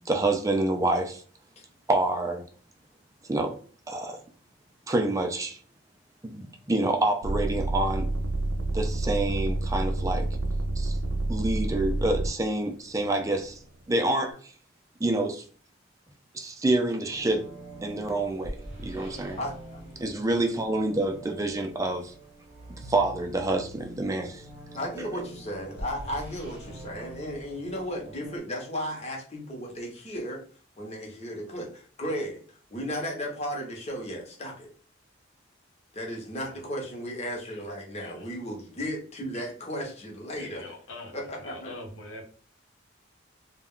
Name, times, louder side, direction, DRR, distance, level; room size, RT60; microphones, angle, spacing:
voice 1, 0.1-1.2 1.9-2.4 3.3-3.5 3.9-4.2 4.9-5.6 6.2-8.1 8.7-10.3 10.8-10.9 11.3-13.6 13.9-14.4 15.0-15.4 16.3-17.5 17.8-18.6 18.8-19.4 20.0-22.1 22.7-24.4 25.0-25.1, right 2 dB, 15° right, 0.3 m, -27 dB
sound 1, 7.2-12.3 13.0-13.7, right 2 dB, 90° right, 0.4 m, -28 dB
sound 2, 17.1-28.4, right 1 dB, 40° right, 0.9 m, -44 dB
voice 2, 19.4-19.8 24.7-30.4 30.8-34.7 35.9-40.6 41.1-41.7, equal, 35° left, 0.8 m, -35 dB
voice 3, 40.3-41.1 41.4-42.2, left 1 dB, 80° left, 0.8 m, -43 dB
2.3 x 2.1 x 3.6 m
head